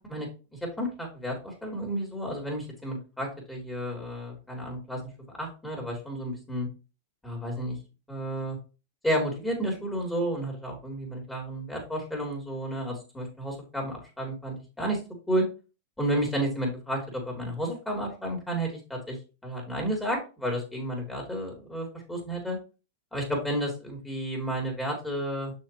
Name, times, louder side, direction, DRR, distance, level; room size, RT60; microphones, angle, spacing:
voice 1, 0.0-5.0 5.4-6.7 7.2-7.8 8.1-8.6 9.0-15.0 15.3-15.5 16.0-22.6 23.1-25.5, right 1 dB, 10° left, -1 dB, 3.9 m, -32 dB
6.8 x 6.4 x 3.1 m, 0.31 s
hypercardioid pair, 115°, 0 cm